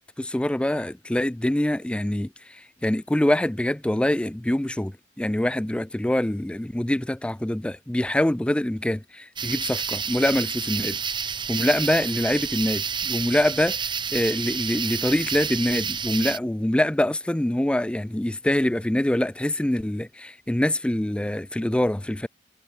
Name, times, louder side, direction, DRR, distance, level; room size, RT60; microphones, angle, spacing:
voice 1, 0.2-4.9 5.2-11.0 11.5-13.8 14.1-22.3, left 1 dB, 5° left, 0.3 m, -24 dB
sound 1, 9.4-16.4, right 6 dB, 25° right, 1.3 m, -29 dB
head